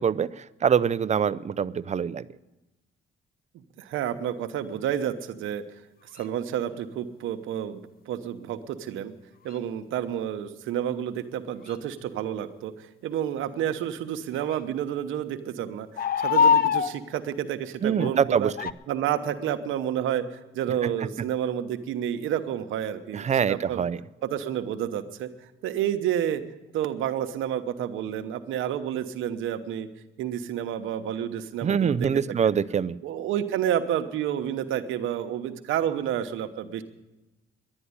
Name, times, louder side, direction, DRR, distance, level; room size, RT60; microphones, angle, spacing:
voice 1, 0.0-2.3 17.8-18.7 20.8-20.9 23.1-24.0 31.6-33.0, right 7 dB, 35° right, 17 dB, 0.5 m, -24 dB
voice 2, 3.8-5.6 6.1-9.1 9.4-18.5 18.9-23.8 24.2-25.3 25.6-26.4 26.7-29.9 30.2-32.1 32.4-32.6 33.0-36.8, right 10 dB, 85° right, 9 dB, 1.0 m, -30 dB
sound 1, 6.2-6.3 9.5-9.6 11.7-11.8 14.3-14.6 16.0-17.0 18.0-18.2 18.6-18.7, left 7 dB, 50° left, 0.6 m, -23 dB
11.5 x 10.0 x 9.7 m, 1.0 s
cardioid pair, 90°, 20 cm